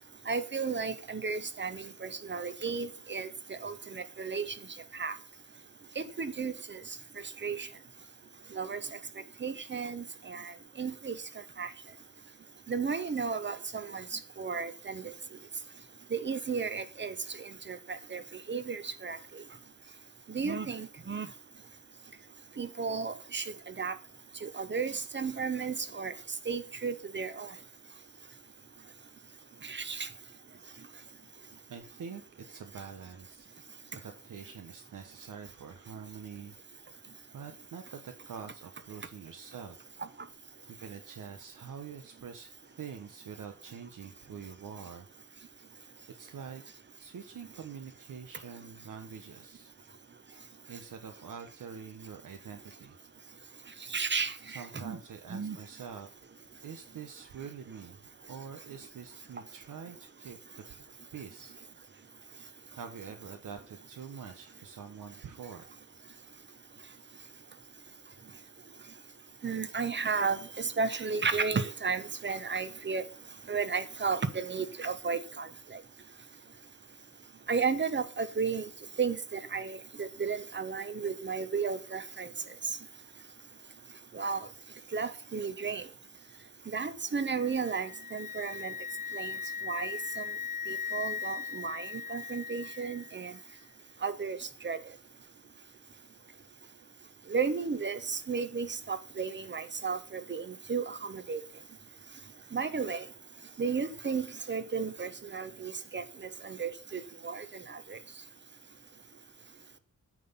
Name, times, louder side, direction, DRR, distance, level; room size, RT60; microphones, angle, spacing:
voice 1, 0.3-4.5 4.9-5.1 6.0-6.8 7.4-7.7 8.5-8.8 9.4-11.2 11.6-11.7 12.7-15.1 16.1-17.1 17.7-18.2 18.5-19.2 20.3-21.3 22.6-24.0 24.4-26.1 26.5-27.5 29.6-30.1 53.9-55.0 55.3-55.6 69.4-73.0 73.5-75.8 77.5-78.7 79.0-82.3 84.1-84.5 84.9-85.8 86.7-88.7 89.1-89.3 89.6-90.2 90.7-93.3 94.0-94.8 97.3-101.4 102.5-103.0 103.6-108.0, right 5 dB, 35° right, 12 dB, 1.0 m, -34 dB
voice 2, 31.7-33.5 33.9-36.5 37.3-39.8 40.7-45.1 46.2-46.6 47.0-49.7 50.7-53.0 54.5-56.1 56.6-58.0 58.3-60.8 61.1-61.5 62.8-65.7, right 6 dB, 80° right, 6 dB, 1.1 m, -45 dB
Wind instrument woodwind instrument, 87.2-93.2, left 6 dB, 25° left, 0.4 m, -39 dB
9.2 x 6.0 x 5.7 m, 0.36 s
wide cardioid pair, 130°, 31 cm